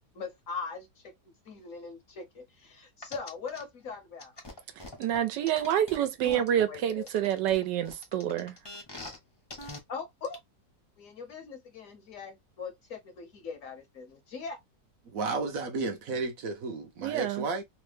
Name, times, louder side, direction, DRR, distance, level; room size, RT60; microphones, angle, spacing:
voice 1, 0.1-4.3 6.2-7.1 9.9-10.4 11.0-14.6, left 5 dB, 60° left, 0.9 m, -41 dB
sound 1, 3.0-3.6 4.2-6.6 7.1-9.2 9.5-9.8 10.2-10.3, left 2 dB, 25° left, 0.6 m, -43 dB
voice 2, 5.0-8.5 17.0-17.4, right 10 dB, 90° right, 1.3 m, -28 dB
voice 3, 15.1-17.6, right 3 dB, 65° right, 0.9 m, -32 dB
3.2 x 2.1 x 3.2 m
omnidirectional pair, 1.8 m